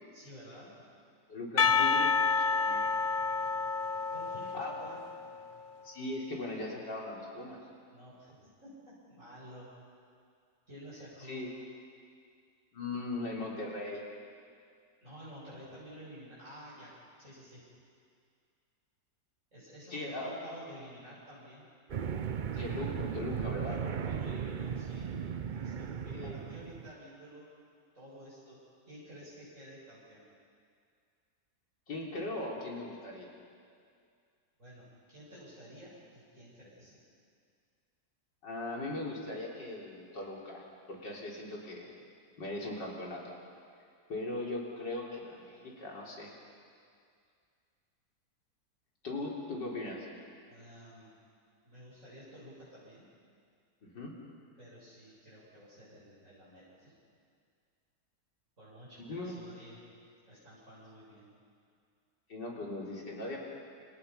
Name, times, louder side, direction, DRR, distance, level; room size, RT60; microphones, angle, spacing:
voice 1, 0.1-0.7 1.6-1.8 4.1-5.0 7.9-9.7 10.7-11.4 15.0-16.9 17.2-17.6 19.5-21.7 23.7-25.1 25.6-27.5 27.9-30.3 34.6-37.0 50.5-51.1 51.6-53.1 54.6-57.0 58.6-59.8 60.3-61.3, equal, 45° right, -9 dB, 8.4 m, -51 dB
voice 2, 1.3-2.9 4.5-4.8 5.8-7.6 11.3-11.5 12.7-14.1 19.9-20.3 22.5-23.8 26.1-26.4 31.9-33.3 38.4-41.9 42.4-43.3 44.1-46.3 49.0-50.1 53.8-54.1 59.0-59.4 62.3-63.4, left 2 dB, 85° left, -2 dB, 4.7 m, -39 dB
Percussion, 1.6-5.5, left 5 dB, 65° left, 0.5 m, -29 dB
sound 1, 21.9-26.9, right 7 dB, 90° right, 0.4 m, -36 dB
28.5 x 28.0 x 5.8 m, 2.3 s
omnidirectional pair, 1.9 m